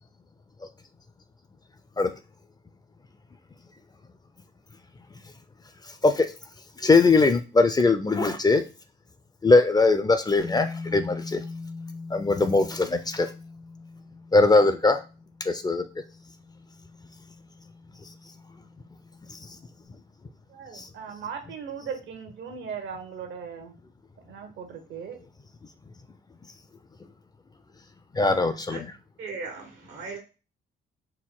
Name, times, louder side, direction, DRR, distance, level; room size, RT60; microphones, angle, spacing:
voice 1, 6.8-8.6 9.4-11.4 12.1-13.3 14.3-15.0 15.5-15.8 20.7-20.9 28.1-28.9, left 3 dB, 20° left, 9 dB, 0.4 m, -21 dB
sound 1, 10.4-19.8, left 3 dB, 85° left, 1.8 m, -42 dB
voice 2, 20.5-23.8 24.2-25.2, right 6 dB, 70° right, 6 dB, 1.0 m, -38 dB
voice 3, 29.2-30.2, right 4 dB, 85° right, 1 dB, 1.5 m, -37 dB
4.3 x 2.2 x 3.8 m, 0.31 s
cardioid pair, 90°, 20 cm